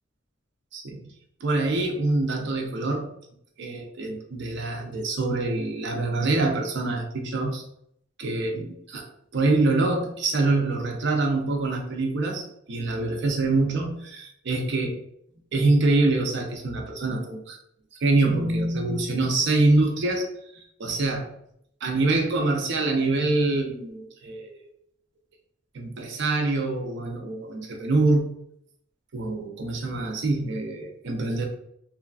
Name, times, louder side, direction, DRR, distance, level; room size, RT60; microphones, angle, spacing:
voice 1, 1.4-3.1 3.6-7.6 8.2-9.1 9.3-15.0 15.5-17.6 18.0-21.3 21.8-24.7 25.7-28.3 29.1-31.4, right 2 dB, 60° right, 3 dB, 0.5 m, -25 dB
3.1 x 2.4 x 2.3 m, 0.72 s
head